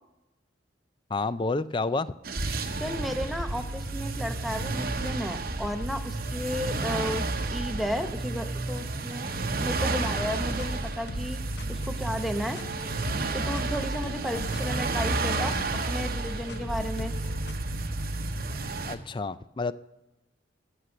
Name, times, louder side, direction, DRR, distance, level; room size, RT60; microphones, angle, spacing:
voice 1, 1.1-2.1 14.3-14.4 18.9-19.7, left 3 dB, 25° left, 15 dB, 0.3 m, -29 dB
sound 1, 2.2-18.9, right 2 dB, 50° right, 0.9 m, -31 dB
voice 2, 2.7-9.3 9.6-11.4 11.7-12.6 13.3-15.6 15.9-17.1, equal, ahead, 6 dB, 0.7 m, -33 dB
sound 2, 10.3-17.5, left 2 dB, 60° left, 0.7 m, -43 dB
14.0 x 6.7 x 7.7 m, 0.97 s
head